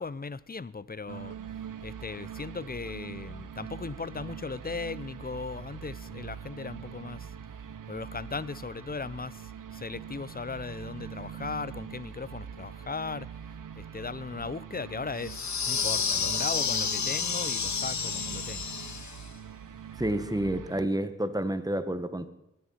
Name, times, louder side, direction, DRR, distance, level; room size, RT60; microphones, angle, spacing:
voice 1, 0.0-1.3 1.8-7.3 7.9-18.7, left 4 dB, 30° left, 0.5 m, -38 dB
sound 1, 1.1-20.9, right 8 dB, 80° right, 0.7 m, -43 dB
sound 2, 15.2-19.3, left 6 dB, 60° left, 0.8 m, -30 dB
voice 2, 20.0-22.3, right 1 dB, 10° right, 1.3 m, -29 dB
18.5 x 11.0 x 5.7 m
cardioid pair, 45°, 31 cm